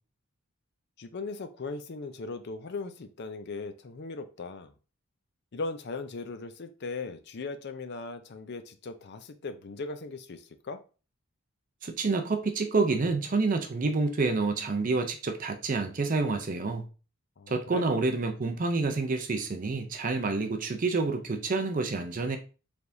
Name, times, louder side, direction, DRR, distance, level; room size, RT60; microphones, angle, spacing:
voice 1, 1.0-4.7 5.5-10.8 17.4-17.9, left 3 dB, 50° left, 0.5 m, -38 dB
voice 2, 11.8-16.8 17.5-22.4, right 3 dB, 40° right, 0.5 m, -28 dB
4.6 x 3.4 x 2.6 m
head